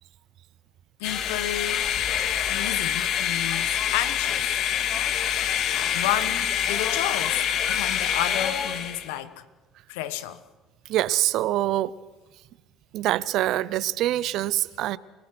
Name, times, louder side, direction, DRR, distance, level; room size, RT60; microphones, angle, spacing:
voice 1, 1.0-1.9 2.5-4.5 5.6-9.4 9.9-10.4, left 12 dB, 85° left, 1.3 m, -31 dB
sound 1, 1.0-9.1, left 9 dB, 65° left, 2.1 m, -26 dB
voice 2, 10.9-11.9 12.9-15.0, right 14 dB, 70° right, 0.7 m, -25 dB
30.0 x 19.0 x 6.2 m
supercardioid pair, 75°, 0 cm